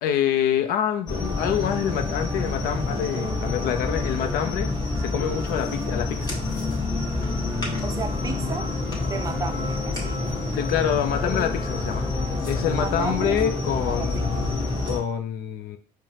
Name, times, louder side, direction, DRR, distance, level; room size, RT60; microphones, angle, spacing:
voice 1, 0.0-4.7 5.0-6.4 10.5-12.1 12.5-15.8, left 9 dB, 75° left, 0.5 m, -26 dB
sound 1, 1.1-15.0, left 2 dB, 25° left, 1.4 m, -27 dB
voice 2, 5.3-5.6 7.8-8.7 9.0-10.2 12.7-13.4 13.9-14.3 14.6-14.9, right 5 dB, 25° right, 0.5 m, -34 dB
sound 2, 6.9-13.6, equal, 45° left, 1.2 m, -46 dB
4.7 x 2.2 x 2.8 m
cardioid pair, 105°, 15 cm